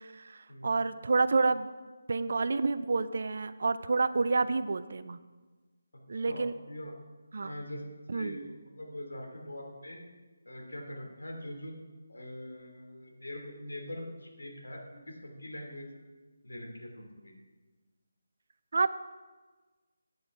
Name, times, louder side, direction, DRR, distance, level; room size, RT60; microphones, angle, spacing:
voice 1, 0.0-1.7 2.1-5.2 6.1-6.5 7.3-7.5 8.1-8.4 18.7-18.9, right 3 dB, 55° right, 14 dB, 0.5 m, -29 dB
voice 2, 6.1-6.9 7.4-10.0 10.5-11.8 12.1-15.9 16.4-17.3, left 1 dB, 80° left, 1 dB, 2.6 m, -43 dB
9.4 x 8.0 x 4.9 m, 1.3 s
figure-of-eight pair, 155°, 0 cm